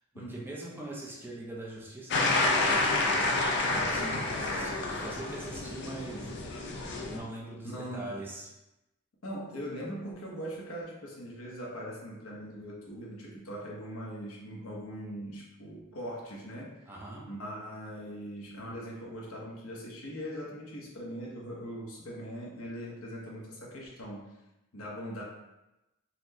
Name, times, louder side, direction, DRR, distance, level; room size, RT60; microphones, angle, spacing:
voice 1, 0.1-3.2 3.6-6.3 7.1-8.5 16.9-17.2, right 1 dB, 10° right, -4 dB, 0.5 m, -42 dB
sound 1, 2.1-7.2, left 2 dB, 55° left, 0.4 m, -29 dB
voice 2, 3.9-4.3 7.6-8.1 9.2-16.8 17.3-24.3 24.7-25.2, equal, 85° left, -3 dB, 0.9 m, -41 dB
4.1 x 2.1 x 2.7 m, 0.96 s
head